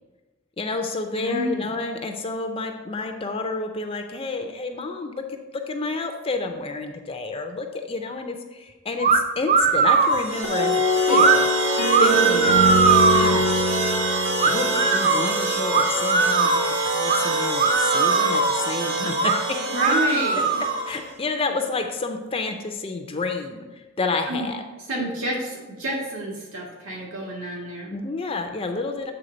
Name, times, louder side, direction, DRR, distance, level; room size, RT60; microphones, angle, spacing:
voice 1, 0.6-5.4 5.7-11.4 11.7-12.6 13.1-13.7 14.5-19.6 20.9-24.6 27.9-29.1, left 3 dB, 25° left, 5 dB, 0.5 m, -30 dB
voice 2, 1.1-1.7 19.6-20.5 24.3-24.5 24.9-27.9, right 1 dB, 75° right, -3 dB, 1.8 m, -29 dB
sound 1, 9.0-9.2 9.5-10.2 11.1-11.4 11.9-13.4 14.4-15.2 15.7-16.6 17.1-17.2 17.5-18.6 19.1-19.4 19.8-20.9, right 5 dB, 35° right, 0.4 m, -20 dB
sound 2, 9.9-21.1, right 2 dB, 60° right, 1.4 m, -26 dB
sound 3, 10.4-15.6, left 1 dB, 85° left, 0.5 m, -24 dB
7.9 x 3.5 x 5.1 m, 1.2 s
head